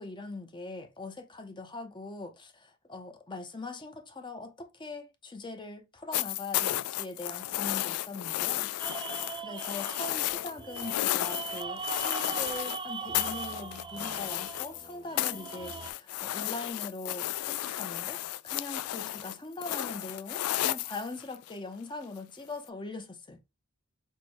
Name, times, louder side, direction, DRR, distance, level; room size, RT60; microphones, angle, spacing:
voice 1, 0.0-9.0 9.3-23.4, left 3 dB, 20° left, 0.6 m, -41 dB
Snow shovel, 6.1-12.8 13.1-14.9 15.2-21.5 22.7-22.8, left 14 dB, 80° left, 0.3 m, -33 dB
sound 1, 8.8-15.9, right 5 dB, 20° right, 0.3 m, -40 dB
4.4 x 2.1 x 4.6 m
head